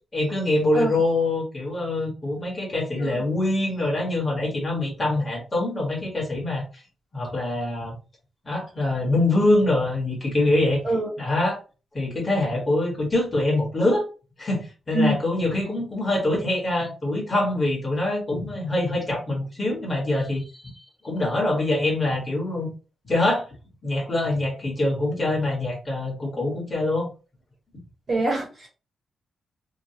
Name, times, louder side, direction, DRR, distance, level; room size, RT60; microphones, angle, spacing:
voice 1, 0.1-6.8 7.1-7.9 8.4-10.8 11.2-11.6 11.9-14.0 14.4-20.7 21.0-22.7 23.0-23.5 23.8-27.1, left 2 dB, 25° left, -3 dB, 1.4 m, -24 dB
voice 2, 28.1-28.7, right 2 dB, 35° right, -1 dB, 1.3 m, -24 dB
3.0 x 2.3 x 2.8 m, 0.33 s
wide cardioid pair, 145°, 0 cm